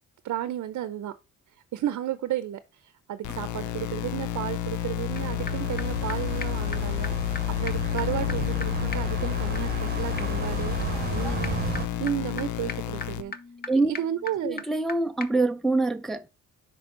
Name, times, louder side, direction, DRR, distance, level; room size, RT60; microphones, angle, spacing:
voice 1, 0.2-1.1 1.7-7.2 7.6-11.6 12.0-13.3 13.8-14.6, right 12 dB, 65° right, 0.7 m, -33 dB
sound 1, 3.2-13.2, left 12 dB, 80° left, 0.6 m, -30 dB
Street Noise, 5.1-11.9, right 5 dB, 30° right, 1.0 m, -34 dB
sound 2, 5.2-5.3 5.5-5.6 5.8-5.9 6.1-6.2 6.4-6.5 6.7-6.8 7.0-7.1 7.3-7.4 7.7-14.9 15.2-15.3, left 4 dB, 30° left, 0.7 m, -41 dB
voice 2, 14.4-16.3, right 2 dB, ahead, 0.5 m, -25 dB
6.1 x 4.7 x 3.8 m
cardioid pair, 90°, 30 cm